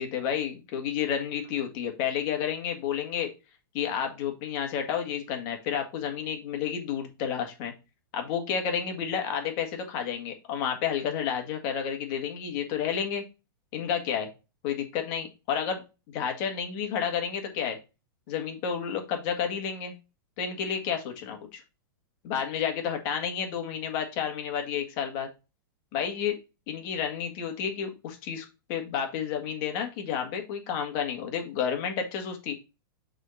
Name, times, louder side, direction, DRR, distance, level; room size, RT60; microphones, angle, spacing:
voice 1, 0.0-3.3 3.7-7.7 8.1-13.2 13.7-14.3 14.6-15.8 16.1-17.8 18.3-19.9 20.4-21.6 22.2-25.3 25.9-26.4 26.7-32.5, left 8 dB, 45° left, 4 dB, 1.7 m, -31 dB
6.3 x 3.8 x 4.0 m, 0.28 s
supercardioid pair, 145°, 12 cm